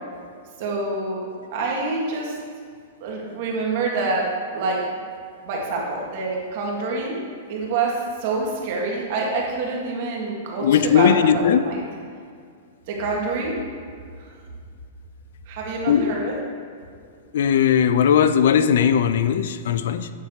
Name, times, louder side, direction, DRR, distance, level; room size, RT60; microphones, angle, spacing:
voice 1, 0.6-2.4 3.0-4.9 5.4-7.2 7.5-11.8 12.9-13.5 14.2-14.3 15.5-16.4, right 3 dB, 55° right, -2 dB, 1.8 m, -26 dB
voice 2, 10.6-11.7 15.9-16.2 17.3-20.1, left 8 dB, 70° left, 12 dB, 0.4 m, -18 dB
9.4 x 3.3 x 6.6 m, 2.1 s
hypercardioid pair, 140°, 0 cm